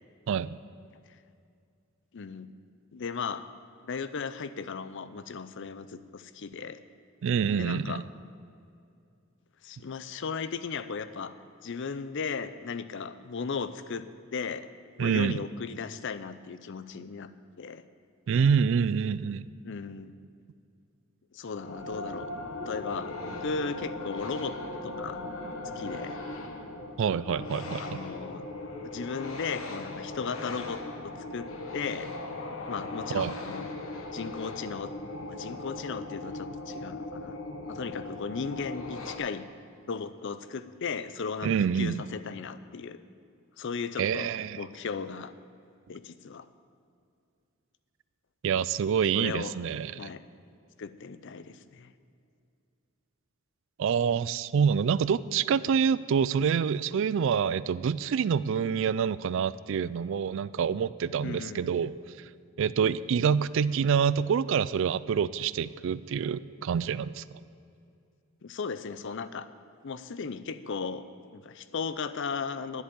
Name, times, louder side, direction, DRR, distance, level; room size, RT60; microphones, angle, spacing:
voice 1, 0.3-0.6 7.2-8.0 15.0-15.4 18.3-19.5 27.0-28.0 33.1-33.3 41.4-42.0 44.0-44.6 48.4-50.1 53.8-61.9 62.6-67.2, right 7 dB, 65° right, 18 dB, 0.3 m, -27 dB
voice 2, 2.1-2.5 2.9-3.4 3.8-6.8 7.5-8.0 9.6-11.3 11.6-14.7 15.0-17.3 17.6-17.8 19.6-20.1 21.3-22.3 22.7-24.6 24.8-25.2 25.8-26.2 27.8-28.4 28.7-32.1 32.7-33.6 34.1-34.9 35.3-37.4 37.7-39.5 39.9-43.0 43.6-45.3 45.9-46.5 49.1-49.5 50.0-50.2 50.8-51.9 61.2-61.7 68.4-69.5 69.8-71.1 71.3-72.8, left 5 dB, 60° left, 13 dB, 0.5 m, -36 dB
sound 1, 21.5-39.2, left 2 dB, 75° left, 1.3 m, -38 dB
10.5 x 8.1 x 8.6 m, 2.4 s
head